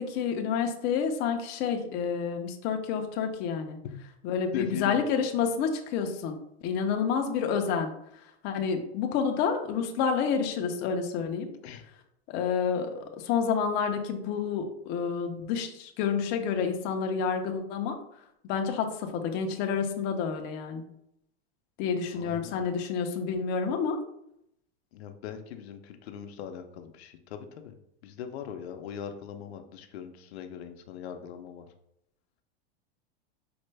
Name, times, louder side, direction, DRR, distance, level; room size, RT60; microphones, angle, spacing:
voice 1, 0.0-3.8 4.2-6.4 6.6-7.9 8.4-11.5 12.3-18.0 18.4-20.8 21.8-24.0, left 6 dB, 35° left, 5 dB, 0.4 m, -29 dB
voice 2, 4.5-5.0 11.6-11.9 22.1-22.6 24.9-27.7 28.0-31.7, left 8 dB, 85° left, 7 dB, 0.6 m, -39 dB
4.3 x 2.1 x 3.2 m, 0.77 s
supercardioid pair, 140°, 31 cm